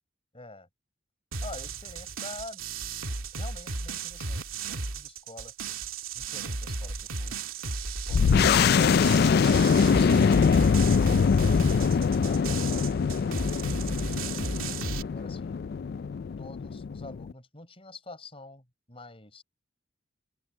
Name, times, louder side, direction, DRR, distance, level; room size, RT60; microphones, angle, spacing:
voice 1, 0.3-0.7 1.4-2.6 3.3-5.5 6.1-7.4 11.8-13.2 15.1-15.6 16.4-19.4, left 2 dB, 25° left, 6.2 m, -47 dB
sound 1, 1.3-15.0, right 4 dB, 80° right, 2.6 m, -35 dB
sound 2, 8.1-17.3, left 6 dB, 50° left, 0.3 m, -23 dB
open air
head